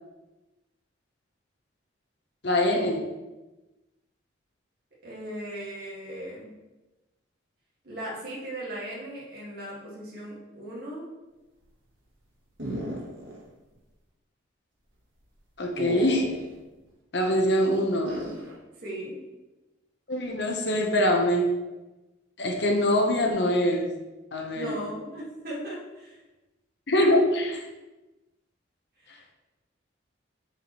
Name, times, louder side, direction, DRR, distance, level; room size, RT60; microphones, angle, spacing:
voice 1, 2.4-3.0 15.6-16.4 17.1-18.1 20.1-21.6 22.4-24.0 24.3-24.8 26.9-27.6, left 1 dB, 60° left, 2 dB, 0.9 m, -24 dB
voice 2, 5.0-6.5 7.8-11.1 18.8-19.2 24.5-26.2 29.1-29.3, right 1 dB, 50° right, -6 dB, 1.8 m, -37 dB
sound 1, 12.6-13.4 13.7-13.8 15.8-16.6 18.0-18.6, right 1 dB, 80° right, 2.2 m, -35 dB
8.3 x 4.7 x 3.0 m, 1.1 s
head